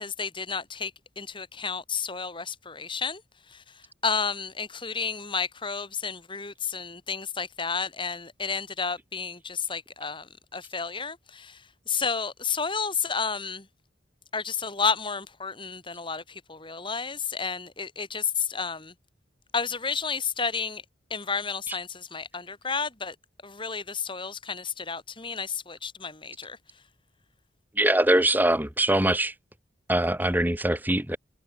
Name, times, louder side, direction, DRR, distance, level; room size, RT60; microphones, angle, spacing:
voice 1, 0.0-3.2 3.5-3.6 4.0-11.6 11.9-13.7 14.3-18.9 19.5-20.8 21.1-23.2 23.4-26.6, left 5 dB, 25° left, 3.7 m, -31 dB
voice 2, 27.8-29.3 29.9-31.2, right 1 dB, 10° right, 2.0 m, -23 dB
head